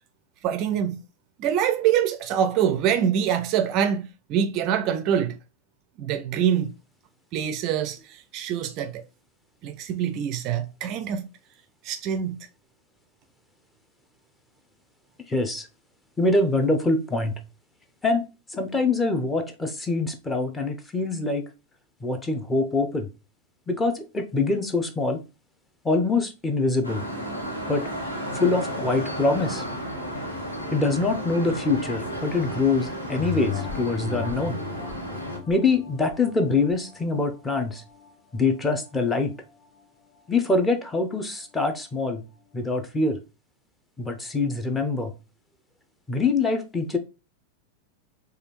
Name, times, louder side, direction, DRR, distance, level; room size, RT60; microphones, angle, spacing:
voice 1, 0.4-1.0 1.4-5.4 6.0-6.7 7.3-9.0 9.6-11.3 11.8-12.5, right 9 dB, 40° right, 0.4 m, -25 dB
voice 2, 15.3-15.7 16.2-17.4 18.0-18.2 18.5-21.5 22.0-23.1 23.7-25.2 25.8-27.0 27.7-27.9 28.3-29.7 30.7-34.6 35.5-37.8 38.3-39.4 40.3-42.2 42.5-43.2 44.0-45.1 46.1-47.0, left 3 dB, 10° left, 0.7 m, -24 dB
sound 1, 26.8-35.4, equal, 80° left, 1.2 m, -33 dB
sound 2, 33.1-38.1 38.6-38.7, left 12 dB, 40° left, 0.9 m, -37 dB
4.9 x 2.4 x 3.0 m
figure-of-eight pair, 90°, 0 cm